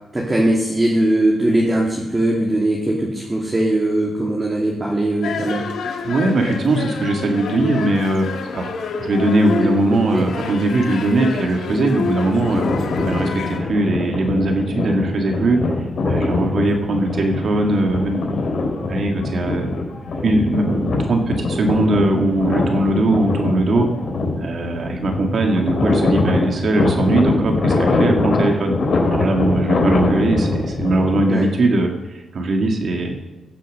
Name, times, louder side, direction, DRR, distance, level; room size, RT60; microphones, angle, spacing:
voice 1, 0.1-5.6 9.6-10.3 31.3-31.5, right 1 dB, 20° right, -3 dB, 2.4 m, -20 dB
sound 1, 5.2-13.6, left 5 dB, 80° left, 1.6 m, -28 dB
voice 2, 6.0-8.7 9.0-15.6 16.0-18.2 18.9-19.7 20.2-23.9 24.4-28.7 29.1-31.9 32.3-33.1, right 2 dB, 55° right, 3 dB, 2.3 m, -20 dB
sound 2, 12.2-31.2, left 2 dB, 55° left, 3.6 m, -23 dB
16.0 x 7.6 x 6.7 m, 1.1 s
cardioid pair, 105°, 0 cm